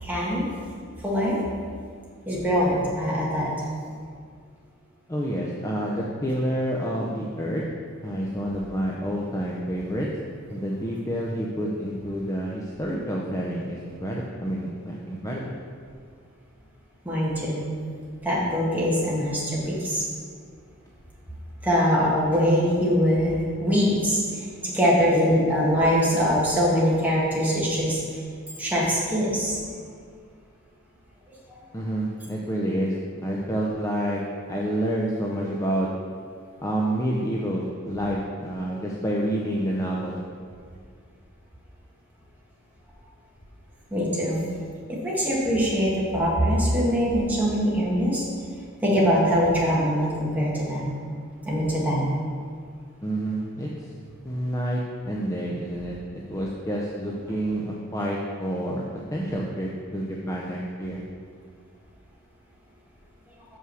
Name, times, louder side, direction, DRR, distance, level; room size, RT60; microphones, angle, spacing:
voice 1, 0.0-0.4 1.0-1.4 2.2-3.5 17.0-17.7 18.2-20.0 21.6-28.0 28.6-29.7 31.3-31.4 43.9-44.4 44.9-48.2 48.8-50.9 51.5-52.1, equal, 10° right, -6 dB, 1.5 m, -23 dB
voice 2, 5.1-7.6 8.0-10.1 10.5-15.6 31.7-32.9 33.2-34.2 34.5-35.9 36.6-40.2 53.0-53.9 54.2-58.8 59.1-61.0, equal, 15° left, -3 dB, 0.5 m, -28 dB
6.2 x 5.7 x 6.2 m, 2.1 s
head